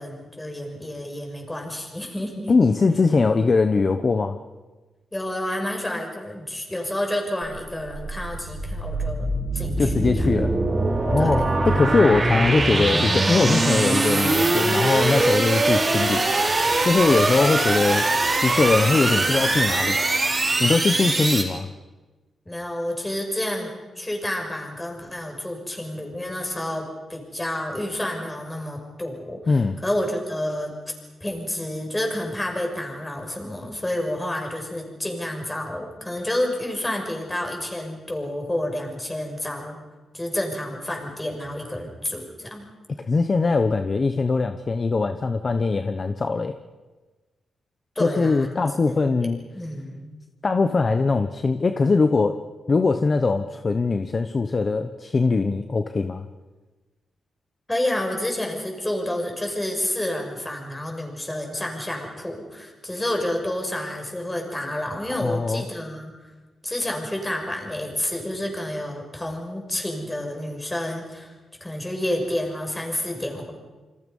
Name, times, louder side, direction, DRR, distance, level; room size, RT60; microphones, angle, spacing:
voice 1, 0.0-2.5 5.1-10.3 11.2-11.6 13.3-13.6 22.4-26.8 27.1-30.7 31.2-39.8 40.1-42.7 48.0-49.1 49.5-50.1 57.7-66.1 66.6-71.3 71.6-73.5, left 1 dB, 10° left, 2 dB, 6.2 m, -29 dB
voice 2, 2.5-4.4 9.8-10.5 11.1-18.1 18.4-20.0 20.6-21.7 29.5-29.8 43.0-46.6 48.0-49.4 50.4-52.4 52.7-56.2 65.2-65.6, left 4 dB, 35° left, 8 dB, 1.0 m, -21 dB
sound 1, 7.4-21.4, right 2 dB, 30° right, 4.9 m, -22 dB
28.5 x 26.0 x 5.5 m, 1.3 s
wide cardioid pair, 120°, 0 cm